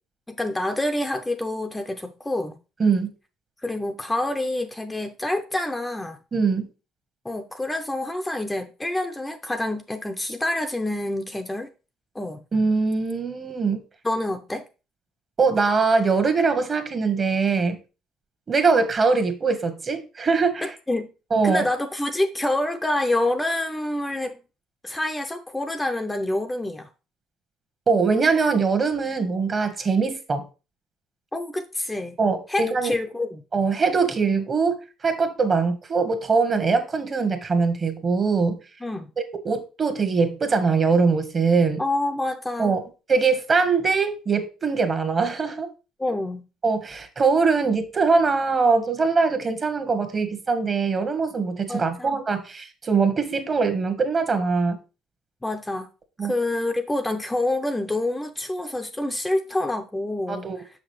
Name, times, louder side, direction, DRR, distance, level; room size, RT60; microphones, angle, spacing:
voice 1, 0.3-2.6 3.6-6.2 7.2-11.7 12.1-12.4 14.0-14.7 20.6-21.1 21.4-24.4 24.8-26.9 31.3-32.1 32.5-33.4 38.8-39.1 41.8-42.7 46.0-46.5 51.7-52.2 55.4-55.9 56.2-60.7, left 1 dB, 10° left, 0.6 m, -27 dB
voice 2, 6.3-6.7 12.5-13.8 15.4-17.8 18.5-20.7 21.3-21.6 27.9-30.4 32.2-32.9 33.5-38.6 39.4-41.8 42.6-45.7 46.6-54.8 56.2-56.3 60.3-60.6, right 4 dB, 35° right, 1.2 m, -22 dB
6.1 x 5.9 x 3.1 m
cardioid pair, 100°, 0 cm